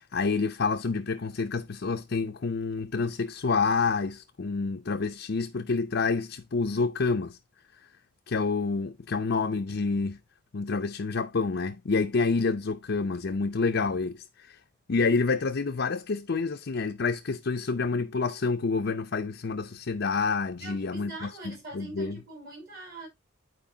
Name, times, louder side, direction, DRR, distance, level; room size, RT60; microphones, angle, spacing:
voice 1, 0.0-7.4 7.8-7.9 8.3-10.2 10.5-14.6 14.9-22.2, left 4 dB, 60° left, 0.6 m, -28 dB
voice 2, 20.6-23.1, right 2 dB, 50° right, 5.4 m, -43 dB
11.5 x 4.6 x 2.8 m
head